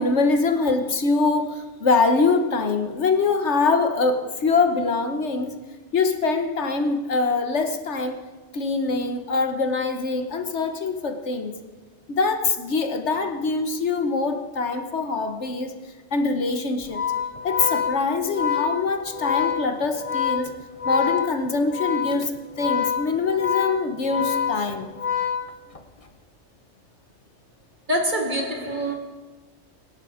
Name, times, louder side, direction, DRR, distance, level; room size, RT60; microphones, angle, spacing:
voice 1, 0.0-5.6 5.9-8.2 8.5-11.5 12.1-15.7 16.1-17.0 17.4-20.5 20.8-22.3 22.6-24.9, left 4 dB, 70° left, 1.5 m, -23 dB
Organ, 16.8-26.0, left 8 dB, 30° left, 1.0 m, -27 dB
voice 2, 27.9-28.9, right 1 dB, 40° right, 2.2 m, -25 dB
24.5 x 11.0 x 5.1 m
omnidirectional pair, 1.3 m